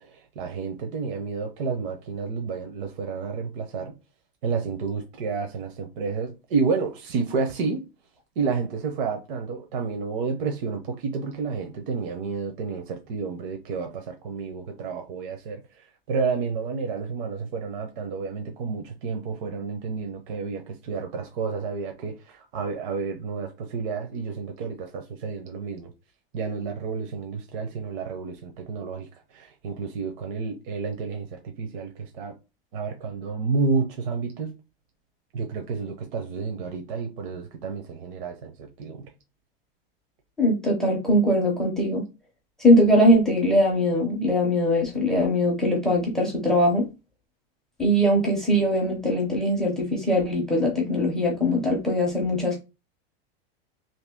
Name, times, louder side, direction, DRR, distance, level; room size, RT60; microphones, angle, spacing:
voice 1, 0.0-3.9 4.4-7.8 8.4-15.6 16.1-25.9 26.3-32.4 32.7-34.5 35.3-39.0, right 5 dB, 60° right, 0.7 m, -30 dB
voice 2, 40.4-42.0 42.6-46.9 47.8-52.6, equal, ahead, 0.5 m, -21 dB
2.8 x 2.7 x 3.5 m
supercardioid pair, 175°, 30 cm